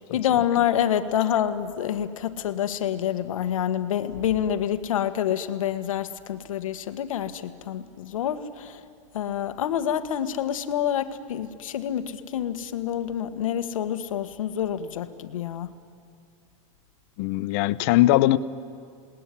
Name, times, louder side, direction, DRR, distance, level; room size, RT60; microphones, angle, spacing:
voice 1, 0.1-8.8 9.1-15.7, left 10 dB, 85° left, 1.6 m, -27 dB
voice 2, 17.2-18.4, left 16 dB, 45° left, 0.8 m, -20 dB
28.0 x 20.0 x 9.8 m
supercardioid pair, 150°, 17 cm